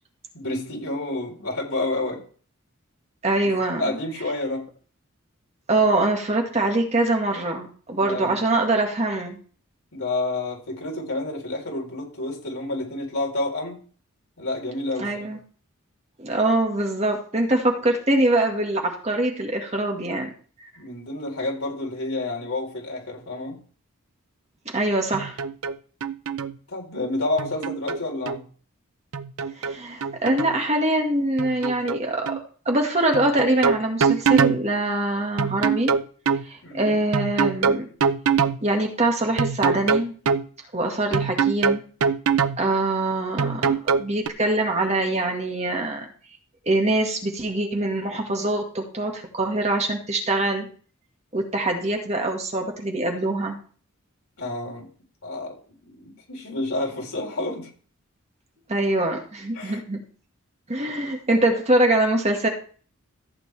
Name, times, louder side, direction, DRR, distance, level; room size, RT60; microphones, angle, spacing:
voice 1, 0.3-2.2 3.8-4.7 7.9-8.4 9.9-13.8 14.4-15.3 20.8-23.6 26.7-28.5 36.6-37.0 54.4-54.9 55.2-57.7 59.5-59.8, left 2 dB, 75° left, -1 dB, 4.0 m, -29 dB
voice 2, 3.2-4.0 5.7-9.4 15.0-15.4 16.2-20.3 24.7-25.4 29.6-35.9 36.4-37.9 38.6-40.2 40.7-41.8 42.6-46.1 46.7-50.7 51.3-53.6 58.7-60.0 60.7-62.5, right 2 dB, 30° right, 2 dB, 1.8 m, -23 dB
sound 1, 25.1-25.8 26.0-26.6 27.4-28.4 29.1-30.6 31.4-32.0 32.3-32.4 33.1-34.6 35.4-36.5 37.1-38.6 39.4-40.5 41.1-42.6 43.4-44.3, right 6 dB, 85° right, 0.6 m, -23 dB
14.5 x 8.4 x 3.4 m, 0.42 s
head